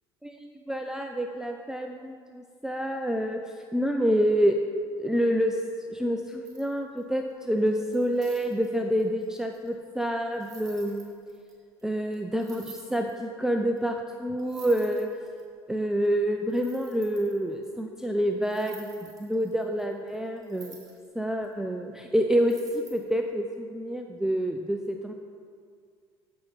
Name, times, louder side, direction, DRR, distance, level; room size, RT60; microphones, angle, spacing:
voice 1, 0.2-3.4 3.7-4.6 5.0-5.6 5.9-11.2 11.8-15.1 15.7-20.8 21.1-25.1, equal, 5° right, 4 dB, 0.5 m, -27 dB
sound 1, 6.4-7.2 7.7-11.5 11.8-11.9 12.1-12.2 12.4-13.2 13.8-13.9 14.1-14.2 14.4-15.4 16.0-16.1 16.5-17.6 18.4-21.1 21.4-21.5 22.4-23.2, right 4 dB, 25° right, 2.1 m, -51 dB
14.0 x 5.9 x 4.0 m, 2.1 s
figure-of-eight pair, 65°, 14 cm